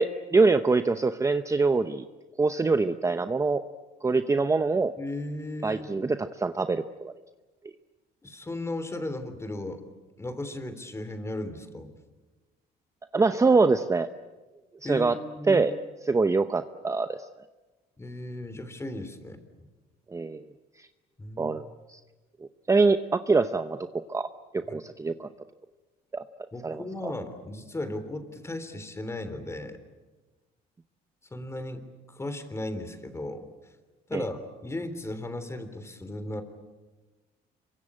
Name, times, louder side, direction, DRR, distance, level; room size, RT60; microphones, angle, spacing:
voice 1, 0.0-2.1 2.4-3.6 4.0-4.9 5.6-7.1 13.1-14.1 14.8-15.1 15.5-15.7 16.1-17.2 20.1-20.4 20.8-20.9 21.4-22.0 22.7-23.8 24.1-24.3 24.5-25.3 26.1-26.2 26.6-27.1 34.1-34.3, right 3 dB, 20° right, 10 dB, 0.8 m, -24 dB
voice 2, 5.0-5.9 8.2-9.8 10.2-12.0 14.8-15.1 15.4-15.6 18.0-19.4 21.2-21.6 24.7-24.8 26.5-29.8 31.3-33.5 34.1-36.4, left 1 dB, 15° left, 10 dB, 3.4 m, -36 dB
27.0 x 24.0 x 8.8 m, 1.2 s
cardioid pair, 110°, 17 cm